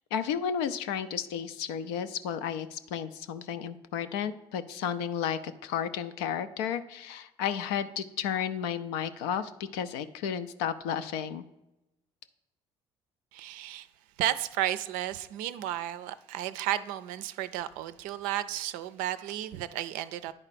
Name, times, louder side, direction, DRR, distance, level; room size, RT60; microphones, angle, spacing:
voice 1, 0.1-11.4, left 8 dB, 80° left, 0.4 m, -33 dB
voice 2, 13.3-13.9 14.2-20.3, right 13 dB, 70° right, 0.4 m, -33 dB
9.8 x 4.4 x 4.1 m
hypercardioid pair, 60°, 14 cm